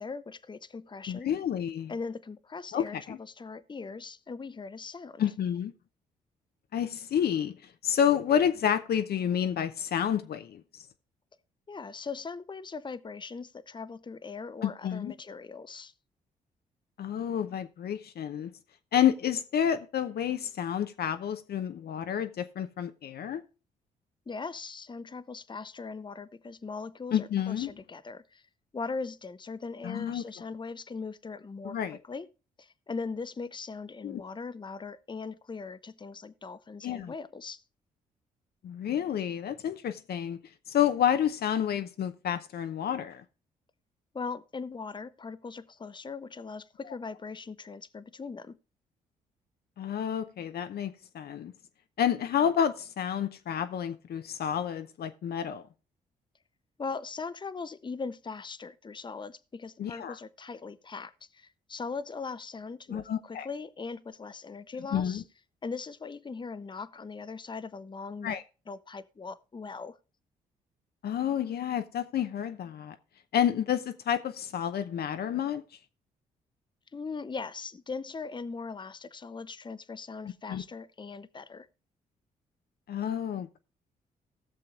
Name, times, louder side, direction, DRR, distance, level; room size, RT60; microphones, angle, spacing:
voice 1, 0.0-1.3 1.9-5.2 11.7-15.9 24.3-28.4 28.7-31.8 32.0-32.3 32.6-37.6 44.1-48.6 56.8-65.2 65.6-68.4 68.7-70.0 76.9-81.7, left 4 dB, 25° left, 0.8 m, -40 dB
voice 2, 1.1-1.9 2.7-3.2 5.2-5.7 6.7-7.6 7.8-10.6 14.6-15.1 17.0-18.5 18.9-23.4 27.1-27.7 29.8-30.2 31.6-32.0 34.0-34.2 36.8-37.1 38.6-40.4 40.7-43.2 49.8-51.5 52.0-55.6 59.8-60.1 62.9-63.5 64.9-65.2 68.2-68.4 71.0-72.9 73.3-75.6 80.5-80.6 82.9-83.6, left 9 dB, 55° left, 0.7 m, -29 dB
19.0 x 6.8 x 2.4 m
hypercardioid pair, 45°, 19 cm